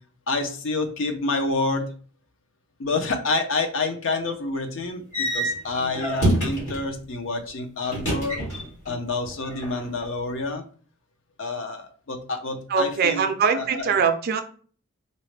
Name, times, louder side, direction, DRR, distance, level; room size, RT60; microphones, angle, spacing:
voice 1, 0.3-1.9 2.8-8.4 8.9-10.6 11.4-13.2 13.5-13.9, left 3 dB, 60° left, 6 dB, 0.5 m, -28 dB
sound 1, 5.1-6.9 7.9-8.9 9.2-10.0, right 1 dB, 90° left, 1.6 m, -26 dB
voice 2, 12.7-14.4, right 6 dB, 45° right, 7 dB, 0.4 m, -22 dB
4.0 x 2.1 x 3.2 m, 0.43 s
head